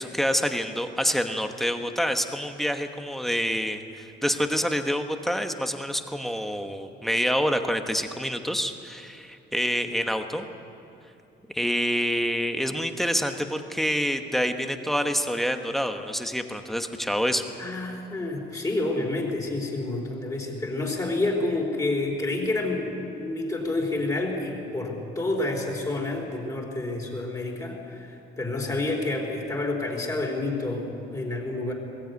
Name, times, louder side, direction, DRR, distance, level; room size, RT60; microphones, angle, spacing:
voice 1, 0.0-10.4 11.5-17.4, equal, ahead, 6 dB, 1.1 m, -27 dB
voice 2, 17.6-31.7, left 2 dB, 15° left, 0 dB, 3.6 m, -29 dB
21.0 x 17.0 x 9.4 m, 2.9 s
cardioid pair, 160°, 20 cm